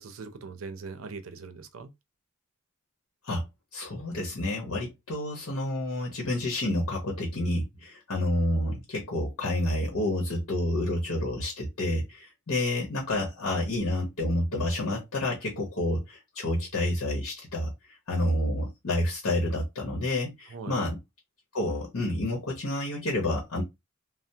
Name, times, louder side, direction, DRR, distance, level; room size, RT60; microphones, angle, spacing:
voice 1, 0.0-1.9 20.5-20.9, right 4 dB, 80° right, 0.5 m, -41 dB
voice 2, 3.7-17.7 18.1-21.0 21.5-23.6, left 1 dB, 85° left, 0.9 m, -29 dB
3.3 x 2.0 x 2.7 m
head